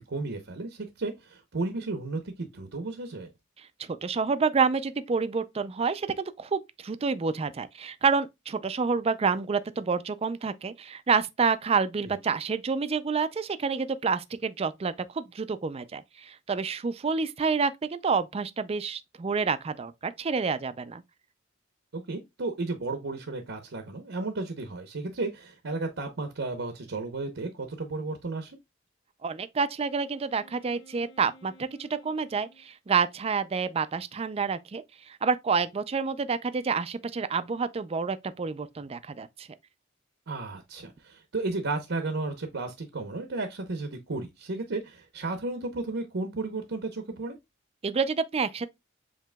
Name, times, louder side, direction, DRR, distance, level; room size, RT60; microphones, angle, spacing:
voice 1, 0.0-3.3 12.0-12.1 21.9-28.6 40.3-47.4, right 3 dB, 75° right, 0.8 m, -33 dB
voice 2, 3.9-21.0 29.2-39.5 47.8-48.7, right 5 dB, 30° right, 0.4 m, -28 dB
Wind instrument woodwind instrument, 29.8-32.7, equal, 70° left, 1.5 m, -55 dB
7.3 x 3.0 x 2.2 m
head